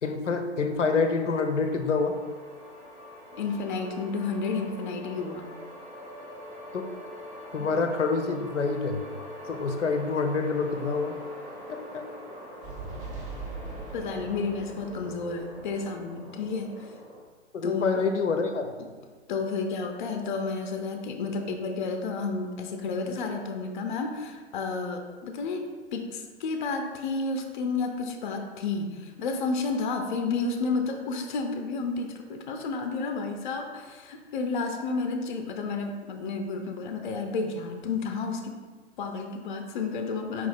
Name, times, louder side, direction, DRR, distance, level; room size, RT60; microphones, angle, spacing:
voice 1, 0.0-2.2 6.7-6.9 7.5-9.0 9.5-11.2 11.7-12.0 17.5-18.7, left 4 dB, 85° left, 5 dB, 0.6 m, -27 dB
sound 1, 1.0-17.2, equal, 10° right, 0.4 m, -42 dB
voice 2, 3.4-5.5 7.6-7.7 13.9-16.9 17.6-18.1 19.3-25.6 25.9-38.5 39.0-40.5, left 4 dB, 45° left, 4 dB, 0.5 m, -31 dB
4.8 x 2.7 x 3.3 m, 1.4 s
figure-of-eight pair, 125°, 35 cm